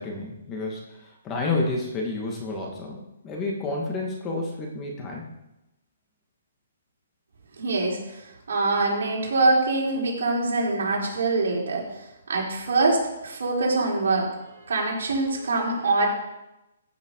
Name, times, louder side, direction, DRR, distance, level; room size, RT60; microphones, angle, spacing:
voice 1, 0.0-5.3, left 2 dB, 20° left, -1 dB, 2.4 m, -30 dB
voice 2, 7.6-8.2 8.5-11.8 12.3-14.3 14.7-16.1, right 2 dB, 70° right, -3 dB, 4.3 m, -24 dB
15.0 x 6.9 x 4.9 m, 0.91 s
hypercardioid pair, 155°, 0 cm